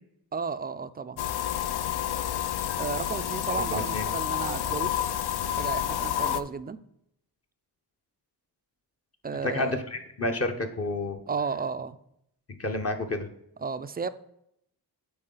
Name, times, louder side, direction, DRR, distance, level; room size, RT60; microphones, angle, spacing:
voice 1, 0.3-1.2 2.8-5.1 5.6-6.8 9.2-9.8 11.3-12.0 13.6-14.1, right 5 dB, 25° right, 13 dB, 0.3 m, -33 dB
sound 1, 1.2-6.4, left 10 dB, 70° left, 0.5 m, -29 dB
voice 2, 3.7-4.1 9.4-11.2 12.6-13.3, left 2 dB, 35° left, 4 dB, 0.8 m, -30 dB
8.6 x 4.3 x 3.8 m, 0.77 s
cardioid pair, 85°, 40 cm